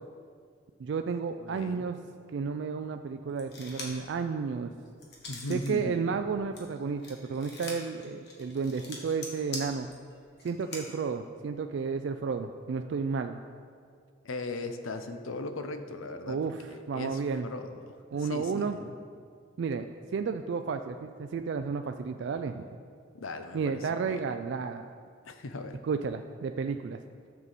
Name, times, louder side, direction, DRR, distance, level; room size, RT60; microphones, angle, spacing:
voice 1, 0.8-2.0 2.3-4.7 5.5-9.9 10.4-13.4 16.3-17.5 18.1-18.8 19.6-19.8 20.1-22.7 23.5-24.9 25.8-27.0, right 5 dB, 60° right, 7 dB, 0.3 m, -32 dB
voice 2, 1.4-1.9 5.3-6.0 14.2-16.4 16.7-19.0 23.1-24.2 25.2-25.8, left 2 dB, 85° left, 8 dB, 0.7 m, -38 dB
sound 1, 3.4-4.1 4.5-5.8 6.1-10.8, left 2 dB, 55° left, 1.5 m, -43 dB
11.0 x 6.8 x 4.1 m, 2.1 s
head